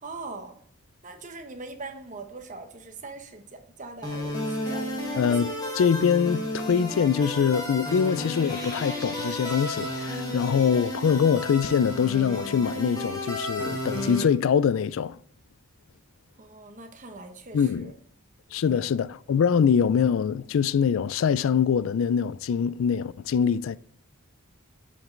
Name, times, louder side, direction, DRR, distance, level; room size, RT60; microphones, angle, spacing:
voice 1, 0.0-0.6 1.0-5.3 10.2-10.7 16.4-17.9 18.6-18.9, right 3 dB, 35° right, 1.0 m, -42 dB
sound 1, 4.0-14.2, left 1 dB, 20° left, 1.4 m, -32 dB
voice 2, 5.2-15.2 17.5-17.9 18.5-23.8, left 7 dB, 65° left, 0.3 m, -24 dB
7.7 x 5.2 x 3.8 m
head